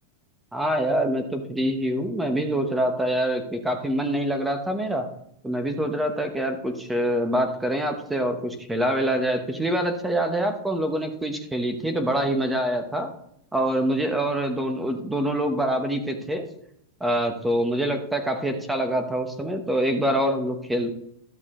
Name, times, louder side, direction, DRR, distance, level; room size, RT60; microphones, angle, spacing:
voice 1, 0.5-5.0 5.4-13.1 13.5-16.5 17.0-20.9, right 1 dB, 5° right, 6 dB, 1.1 m, -25 dB
12.5 x 6.5 x 3.8 m, 0.74 s
supercardioid pair, 140°, 0 cm